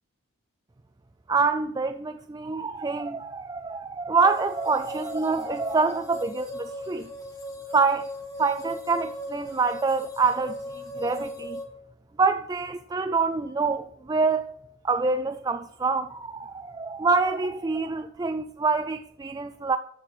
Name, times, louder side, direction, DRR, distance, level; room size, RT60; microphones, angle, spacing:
voice 1, 1.3-7.1 7.7-8.1 8.4-11.6 12.2-14.6 14.8-19.8, right 4 dB, 15° right, 0.3 m, -26 dB
sound 1, 4.2-11.6, equal, 15° left, 2.0 m, -38 dB
14.0 x 4.9 x 7.4 m
head